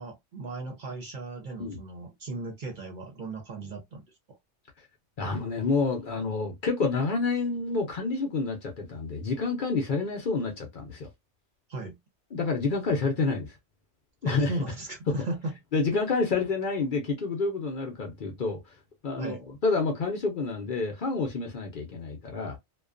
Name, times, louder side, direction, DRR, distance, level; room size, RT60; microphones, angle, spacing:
voice 1, 0.0-4.0 11.7-12.0 14.3-15.5 19.2-19.4, right 2 dB, 50° right, 0.8 m, -36 dB
voice 2, 5.2-11.1 12.3-13.5 14.2-14.5 15.1-15.2 15.7-18.6 19.0-22.6, left 4 dB, 50° left, 0.7 m, -28 dB
2.4 x 2.2 x 2.4 m
omnidirectional pair, 1.2 m